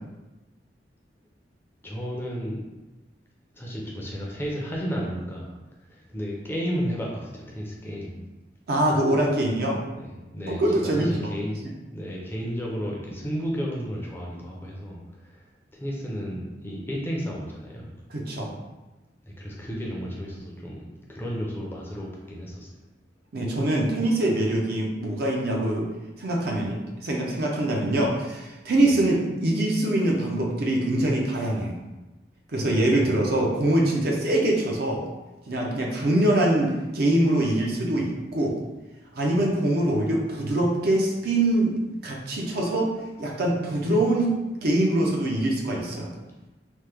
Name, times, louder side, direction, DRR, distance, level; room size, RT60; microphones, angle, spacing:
voice 1, 1.8-2.6 3.5-8.2 9.9-15.5 15.7-17.9 19.3-22.7 28.8-29.0 32.6-33.6, equal, 10° left, -3 dB, 0.5 m, -33 dB
voice 2, 8.7-9.8 10.5-11.3 18.1-18.5 23.3-25.9 26.2-31.7 32.5-35.1 35.5-38.6 39.1-41.8 42.0-42.9 43.2-44.3 44.6-46.1, right 1 dB, 60° right, -1 dB, 0.5 m, -24 dB
3.0 x 2.1 x 3.4 m, 1.1 s
head